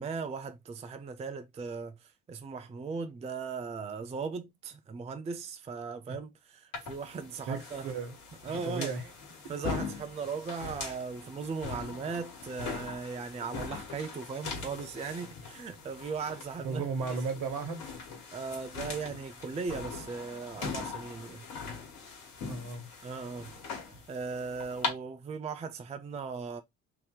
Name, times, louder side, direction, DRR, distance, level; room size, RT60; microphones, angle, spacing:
voice 1, 0.0-7.9 8.4-8.9 9.5-16.9 18.3-21.4 23.0-23.6 23.9-26.6, right 5 dB, 15° right, 0.4 m, -38 dB
sound 1, 6.7-24.9, left 5 dB, 65° left, 1.7 m, -41 dB
voice 2, 7.5-8.2 8.4-9.1 16.6-17.8 22.4-22.9, right 4 dB, 60° right, 1.2 m, -35 dB
3.2 x 2.7 x 3.7 m
hypercardioid pair, 55°, 39 cm